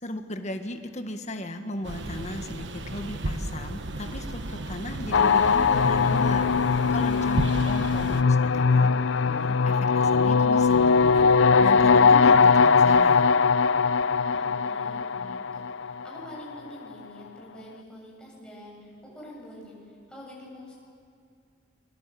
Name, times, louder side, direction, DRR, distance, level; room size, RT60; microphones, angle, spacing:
voice 1, 0.0-8.9 9.3-11.3 11.6-13.3, left 1 dB, 40° left, 6 dB, 1.7 m, -36 dB
sound 1, 1.8-8.2, right 2 dB, 70° right, 1.2 m, -34 dB
sound 2, 5.1-16.3, left 5 dB, 85° left, 0.6 m, -20 dB
voice 2, 7.3-7.7 14.1-20.8, equal, 5° left, -4 dB, 7.4 m, -46 dB
27.5 x 23.0 x 7.8 m, 2.4 s
head